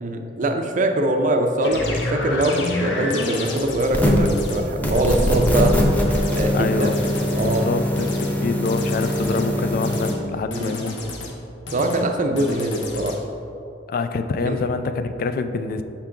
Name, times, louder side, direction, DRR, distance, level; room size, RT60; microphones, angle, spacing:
voice 1, 0.0-5.8 6.3-6.9 7.3-7.7 10.5-10.7 11.7-13.2 14.4-14.6, right 1 dB, 45° right, 5 dB, 0.5 m, -22 dB
sound 1, 1.6-3.9 4.3-4.6 4.9-5.8 6.1-6.5 6.8-7.6 8.0-8.3 8.7-9.5 9.8-10.2 10.5-11.3 11.7-12.0 12.4-13.2, left 1 dB, 80° left, 0.7 m, -30 dB
sound 2, 3.9-4.3 4.8-10.1, equal, 10° left, 0.7 m, -22 dB
voice 2, 6.5-7.0 7.6-11.0 12.3-12.6 13.9-15.8, left 4 dB, 55° left, 9 dB, 0.3 m, -26 dB
5.7 x 3.8 x 4.5 m, 2.7 s
head